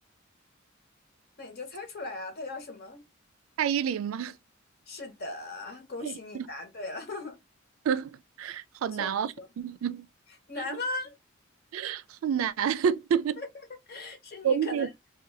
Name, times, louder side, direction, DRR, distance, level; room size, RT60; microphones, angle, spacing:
voice 1, 1.4-3.0 4.9-7.4 8.8-9.5 10.5-11.1 13.4-13.5 13.9-14.9, left 2 dB, 50° left, 0.9 m, -38 dB
voice 2, 3.6-4.3 6.0-6.5 7.8-10.1 11.7-13.4 14.4-14.9, right 8 dB, 80° right, 0.3 m, -29 dB
2.6 x 2.2 x 3.9 m
head